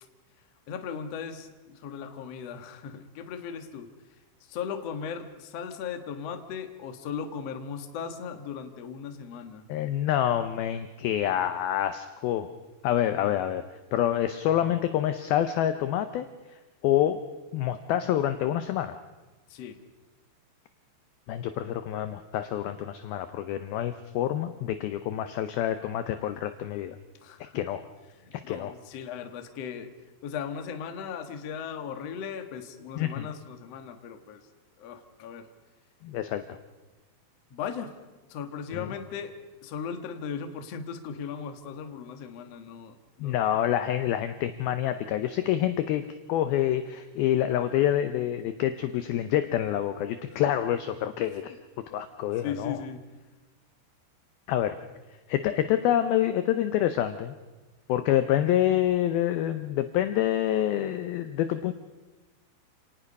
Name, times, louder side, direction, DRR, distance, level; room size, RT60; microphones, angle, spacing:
voice 1, 0.7-3.9 4.4-9.6 19.5-19.8 27.2-27.6 28.1-29.9 30.2-34.4 34.8-35.5 37.5-37.9 38.3-39.3 39.6-43.4 50.3-50.4 52.4-53.0, left 7 dB, 65° left, 6 dB, 1.5 m, -37 dB
voice 2, 9.7-12.5 12.8-16.3 16.8-17.2 17.5-19.0 21.3-27.0 27.5-27.8 28.5-28.7 33.0-33.3 36.0-36.6 38.7-38.9 43.2-46.0 46.3-51.6 51.9-52.8 54.5-54.8 55.3-57.4 57.9-61.7, left 11 dB, 85° left, 10 dB, 2.1 m, -27 dB
29.0 x 18.5 x 5.4 m, 1.2 s
omnidirectional pair, 5.4 m